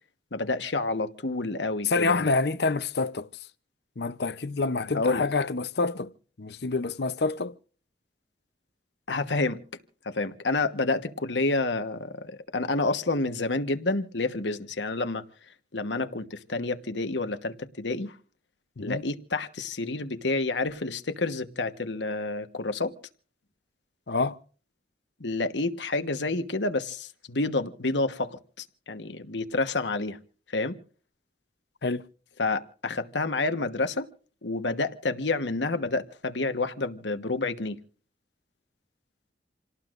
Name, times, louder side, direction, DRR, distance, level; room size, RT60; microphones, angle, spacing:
voice 1, 0.3-2.3 4.9-5.3 9.1-9.6 10.0-15.2 15.7-18.1 18.8-22.9 25.2-30.2 30.5-30.7 32.4-34.1 34.4-37.8, left 3 dB, 80° left, 1.3 m, -29 dB
voice 2, 1.9-3.3 4.0-6.1 6.4-7.5 18.8-19.0 24.1-24.4 31.8-32.0, left 3 dB, 65° left, 0.8 m, -27 dB
28.0 x 18.5 x 2.6 m
head